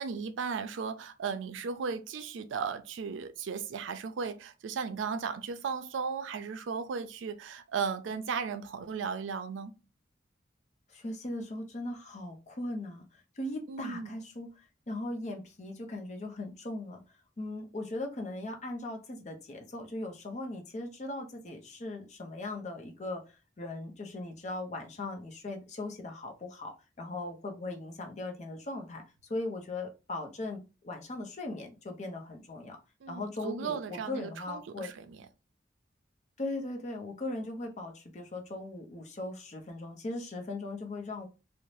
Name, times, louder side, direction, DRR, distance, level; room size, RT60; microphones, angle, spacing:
voice 1, 0.0-9.7 13.7-14.1 33.0-35.3, right 5 dB, 85° right, 0.4 m, -36 dB
voice 2, 10.9-14.5 14.9-17.0 17.4-32.8 33.1-34.9 36.4-41.3, left 2 dB, 40° left, 0.5 m, -39 dB
2.6 x 2.0 x 3.1 m
head